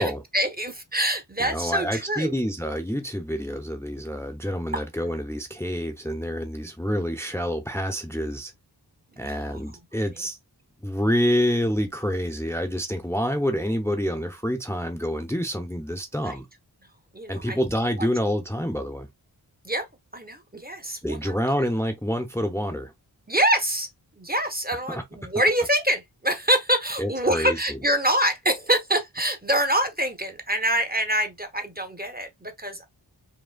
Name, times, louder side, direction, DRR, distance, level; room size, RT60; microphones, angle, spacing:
voice 1, 0.0-2.3 4.7-4.8 9.2-9.6 16.2-16.3 17.1-17.6 18.0-18.1 19.6-19.9 20.1-21.6 23.3-23.9 24.2-32.9, right 1 dB, 20° right, 1.1 m, -25 dB
voice 2, 1.4-8.5 9.2-10.4 10.8-16.5 17.3-19.1 21.0-22.9 24.9-25.0 27.0-27.8, equal, 5° left, 0.9 m, -27 dB
5.2 x 3.0 x 2.3 m
wide cardioid pair, 55°, 43 cm